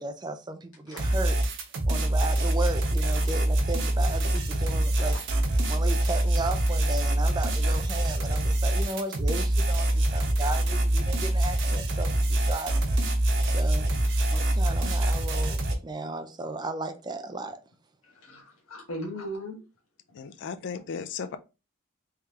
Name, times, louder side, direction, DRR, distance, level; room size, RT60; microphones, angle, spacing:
voice 1, 0.0-1.4 1.9-5.2 5.7-12.9 13.5-13.9 14.3-17.6, right 2 dB, 20° right, 0.5 m, -35 dB
sound 1, 1.0-15.7, right 1 dB, 60° right, 1.0 m, -25 dB
voice 2, 4.6-5.2 10.9-11.1 11.6-11.8 14.1-14.5 18.0-19.6 20.1-20.2, equal, 85° left, 1.2 m, -40 dB
voice 3, 20.1-21.4, left 6 dB, 60° left, 0.4 m, -35 dB
3.7 x 3.2 x 2.9 m
head